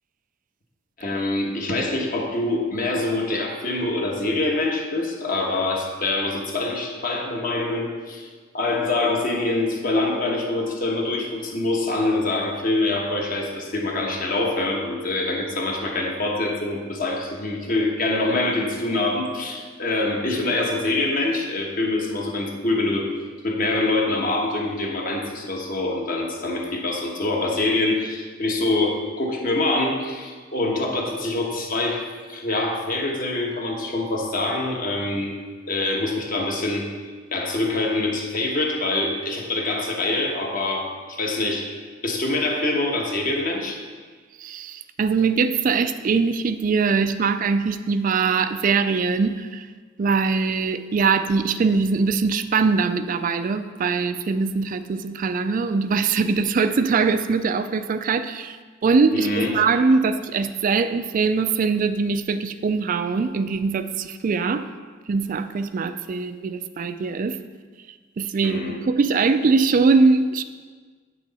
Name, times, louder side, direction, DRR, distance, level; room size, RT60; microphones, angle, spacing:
voice 1, 1.0-8.3 8.5-23.1 23.4-35.3 35.7-36.9 37.3-41.8 42.0-43.8 59.1-59.5 68.4-68.8, left 2 dB, 45° left, 0 dB, 1.2 m, -25 dB
voice 2, 44.4-49.7 50.0-58.6 58.8-64.7 65.1-67.4 68.2-70.4, right 4 dB, 40° right, 11 dB, 0.3 m, -22 dB
8.7 x 6.2 x 4.1 m, 1.5 s
head